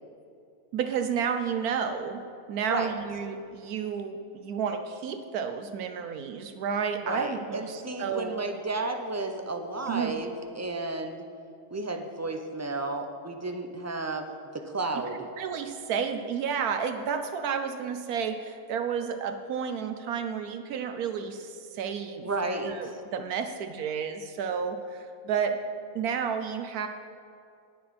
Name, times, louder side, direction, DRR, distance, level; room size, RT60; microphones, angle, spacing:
voice 1, 0.7-2.2 2.5-8.4 9.9-10.2 15.1-22.3 22.6-25.6 25.9-26.9, right 7 dB, 75° right, 8 dB, 1.2 m, -31 dB
voice 2, 7.0-11.2 11.7-14.3 14.5-15.3 22.2-22.8, right 2 dB, 15° right, 5 dB, 0.5 m, -32 dB
20.0 x 7.6 x 4.3 m, 2.4 s
omnidirectional pair, 1.6 m